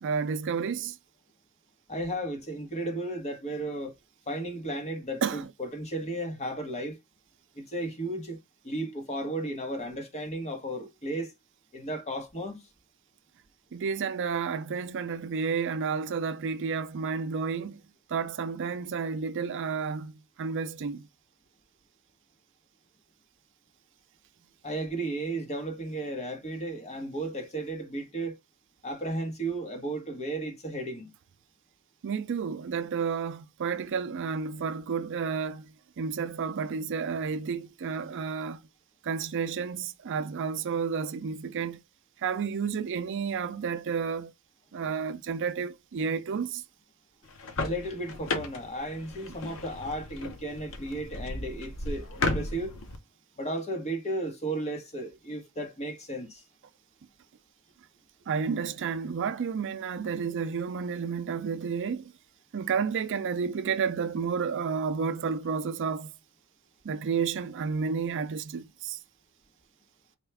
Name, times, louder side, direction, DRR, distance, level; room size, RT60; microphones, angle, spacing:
voice 1, 0.0-1.0 5.2-5.5 13.7-17.8 18.1-21.1 32.0-38.6 39.0-41.8 42.2-44.3 44.7-46.6 58.3-62.1 62.5-66.1 66.8-69.0, right 6 dB, 55° right, 0.4 m, -31 dB
voice 2, 1.9-3.9 4.3-7.0 7.5-8.4 8.6-11.3 11.7-12.7 24.6-28.4 28.8-31.1 47.6-52.8 53.3-56.4, right 1 dB, 30° left, 1.1 m, -34 dB
sound 1, 47.2-53.0, left 3 dB, 65° left, 0.8 m, -35 dB
4.3 x 2.3 x 3.3 m
head